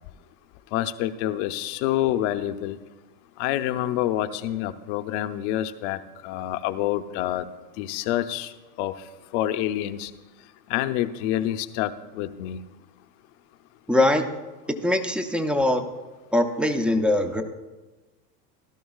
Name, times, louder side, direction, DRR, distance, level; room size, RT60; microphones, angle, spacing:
voice 1, 0.7-2.8 3.4-7.5 7.8-8.5 8.8-8.9 9.3-10.1 10.7-12.6, left 13 dB, 45° left, 10 dB, 0.7 m, -27 dB
voice 2, 13.9-14.2 14.8-15.8 16.3-17.4, left 1 dB, ahead, 8 dB, 0.5 m, -22 dB
17.0 x 12.5 x 2.4 m, 1.2 s
hypercardioid pair, 110°, 49 cm